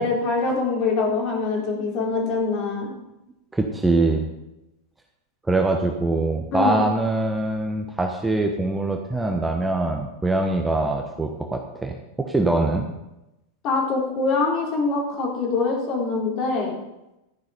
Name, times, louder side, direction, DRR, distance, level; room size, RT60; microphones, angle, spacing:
voice 1, 0.0-2.9 6.5-6.8 13.6-16.8, left 3 dB, 40° left, -1 dB, 4.2 m, -24 dB
voice 2, 3.5-4.3 5.5-11.9 12.3-12.9, right 2 dB, 10° right, 3 dB, 1.2 m, -23 dB
13.5 x 10.0 x 5.1 m, 0.93 s
figure-of-eight pair, 90°, 0 cm